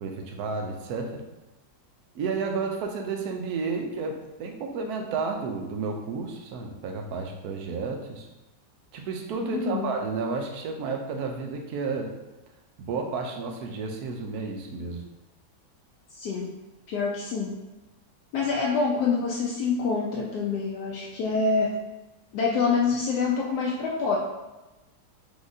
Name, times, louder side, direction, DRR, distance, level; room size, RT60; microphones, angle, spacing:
voice 1, 0.0-1.2 2.1-8.3 8.9-12.1 12.8-15.0, right 4 dB, 70° right, 3 dB, 1.1 m, -31 dB
voice 2, 9.5-9.9 16.1-16.5 16.9-17.5 18.3-21.8 22.3-24.2, left 4 dB, 75° left, -3 dB, 1.1 m, -26 dB
5.0 x 3.7 x 2.6 m, 1.0 s
omnidirectional pair, 1.8 m